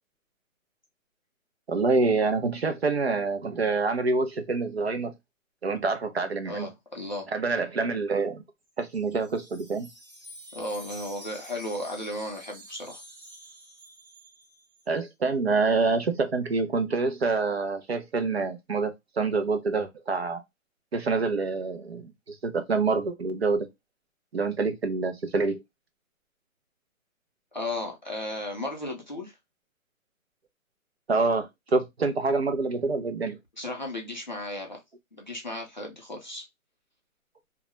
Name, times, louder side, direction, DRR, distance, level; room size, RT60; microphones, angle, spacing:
voice 1, 1.7-5.1 5.6-6.7 7.3-8.4 8.8-9.9 14.9-20.4 20.9-23.7 24.3-25.6 31.1-33.4, right 3 dB, 50° right, 0.5 m, -26 dB
voice 2, 6.5-7.3 10.5-13.0 27.5-29.3 33.6-34.8 35.2-36.4, left 1 dB, 35° left, 0.4 m, -35 dB
Wind chime, 8.7-14.9, equal, 20° right, 0.8 m, -48 dB
2.2 x 2.0 x 2.9 m
hypercardioid pair, 165°, 42 cm